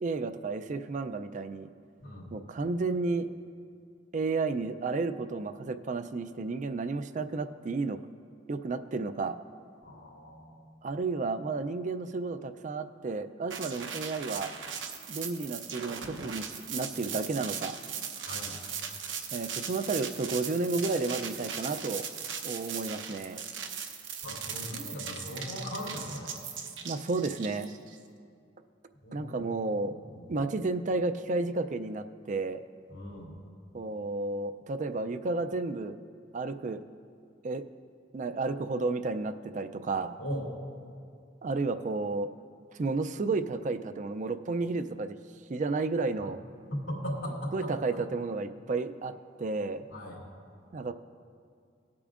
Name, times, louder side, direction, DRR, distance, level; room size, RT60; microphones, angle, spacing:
voice 1, 0.0-1.7 2.3-3.3 4.1-8.0 8.5-9.4 10.8-14.5 15.1-17.8 19.3-22.0 22.4-23.4 26.8-27.7 29.1-30.0 30.3-32.6 33.7-35.9 36.3-36.8 37.4-37.6 38.1-40.2 41.4-42.3 42.8-45.2 45.5-46.4 47.5-49.9 50.7-50.9, right 3 dB, 40° right, 10 dB, 0.4 m, -32 dB
voice 2, 9.8-10.7 18.2-18.6 24.2-26.4 29.0-30.5 32.9-33.4 40.2-40.6 46.2-46.3 46.7-47.7 49.9-50.2, equal, 90° left, -3 dB, 2.7 m, -39 dB
sound 1, 13.5-28.0, right 7 dB, 75° right, 0.8 m, -38 dB
19.0 x 8.5 x 2.5 m, 2.3 s
head